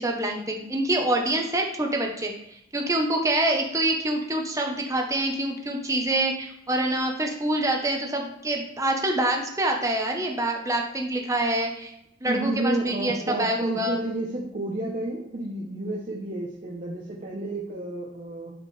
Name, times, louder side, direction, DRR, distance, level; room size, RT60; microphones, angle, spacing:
voice 1, 0.0-2.3 2.7-11.9 12.2-14.0, right 1 dB, 15° right, 1 dB, 1.0 m, -26 dB
voice 2, 12.2-18.5, right 2 dB, 40° right, -4 dB, 1.0 m, -31 dB
11.0 x 4.9 x 3.3 m, 0.80 s
head